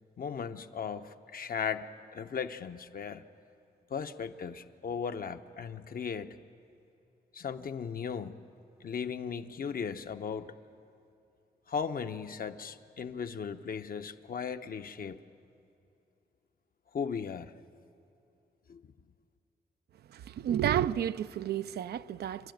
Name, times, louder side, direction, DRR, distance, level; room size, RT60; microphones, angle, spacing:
voice 1, 0.2-3.2 3.9-6.3 7.3-8.4 8.8-10.5 11.7-15.2 16.9-17.5 18.7-18.8, left 6 dB, 60° left, 0.9 m, -37 dB
voice 2, 20.1-22.5, right 10 dB, 85° right, 0.5 m, -31 dB
27.5 x 11.5 x 9.3 m
cardioid pair, 65°, 16 cm